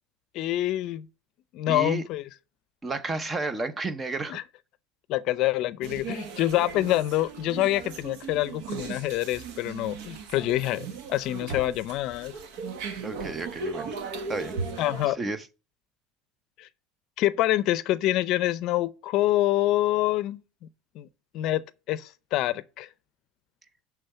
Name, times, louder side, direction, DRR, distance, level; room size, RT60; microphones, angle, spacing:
voice 1, 0.3-1.1 1.5-2.2 4.3-4.4 5.1-12.3 14.8-15.2 16.6-16.7 17.2-20.4 20.9-21.1 21.3-21.6 21.9-22.9, left 15 dB, 55° left, 0.5 m, -26 dB
voice 2, 1.7-2.0 2.8-4.4 13.0-14.0 14.3-14.5 15.1-15.4, right 3 dB, 20° right, 0.6 m, -32 dB
sound 1, 5.8-15.1, right 4 dB, 70° right, 1.3 m, -37 dB
11.0 x 3.6 x 5.7 m
supercardioid pair, 125°, 0 cm